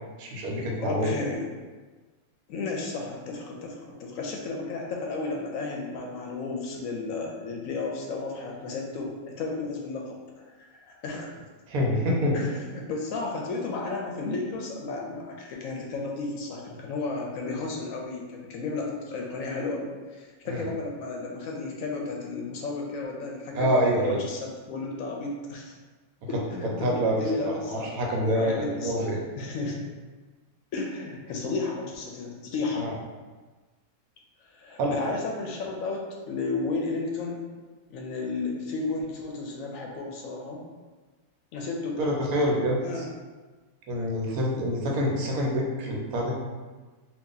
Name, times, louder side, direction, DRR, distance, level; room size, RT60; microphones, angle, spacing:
voice 1, 0.2-1.1 11.7-12.4 20.5-20.7 23.5-24.2 26.8-29.2 32.8-32.9 34.8-35.0 42.0-43.0 43.9-46.3, equal, 75° right, -1 dB, 1.1 m, -26 dB
voice 2, 0.8-1.4 2.5-11.3 12.3-25.7 26.3-28.0 28.3-29.9 30.7-32.9 34.5-37.4 37.9-40.6 41.5-42.1 42.8-43.1, left 3 dB, 70° left, 0 dB, 0.9 m, -33 dB
2.8 x 2.4 x 3.7 m, 1.3 s
omnidirectional pair, 1.5 m